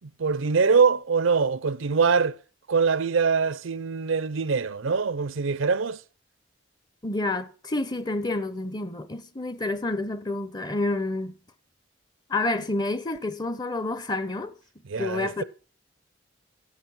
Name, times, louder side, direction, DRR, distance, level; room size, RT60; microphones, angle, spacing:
voice 1, 0.0-2.4 2.7-6.0 14.9-15.4, right 5 dB, 80° right, 0.6 m, -23 dB
voice 2, 7.0-11.3 12.3-14.5 15.0-15.4, left 2 dB, 20° left, 0.7 m, -29 dB
12.0 x 7.6 x 6.1 m
head